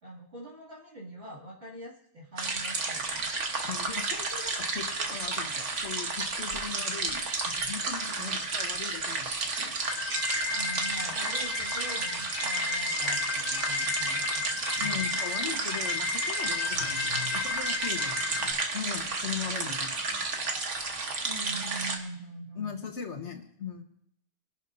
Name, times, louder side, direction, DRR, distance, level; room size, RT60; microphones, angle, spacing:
voice 1, 0.0-3.4 8.1-8.3 10.5-15.0 21.2-22.9, right 2 dB, 60° right, -6 dB, 2.9 m, -43 dB
sound 1, 2.4-22.0, right 3 dB, 75° right, 1.7 m, -32 dB
voice 2, 3.6-9.3 9.6-9.7 11.2-11.3 14.8-20.5 22.6-23.8, left 7 dB, 70° left, 4 dB, 1.6 m, -39 dB
sound 2, 9.9-18.5, left 5 dB, 50° left, 1.2 m, -33 dB
24.0 x 11.0 x 2.7 m, 0.68 s
omnidirectional pair, 1.2 m